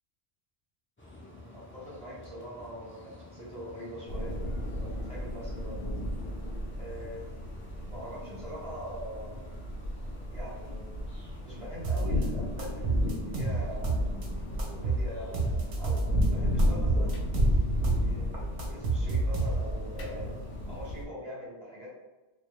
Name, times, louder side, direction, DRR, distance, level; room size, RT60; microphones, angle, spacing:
sound 1, 1.0-20.9, left 2 dB, 20° left, 0.3 m, -50 dB
voice 1, 1.1-4.4 4.8-5.8 6.8-7.5 7.9-9.5 10.3-14.0 14.7-17.3 17.8-20.4 20.7-21.9, equal, 40° right, -7 dB, 0.9 m, -43 dB
sound 2, 4.1-21.0, equal, 70° left, 0.7 m, -32 dB
sound 3, 11.8-12.3 12.6-14.3 14.6-16.3 16.6-18.1 18.3-19.9, right 3 dB, 65° right, 0.7 m, -30 dB
2.2 x 2.1 x 2.9 m, 1.1 s
omnidirectional pair, 1.0 m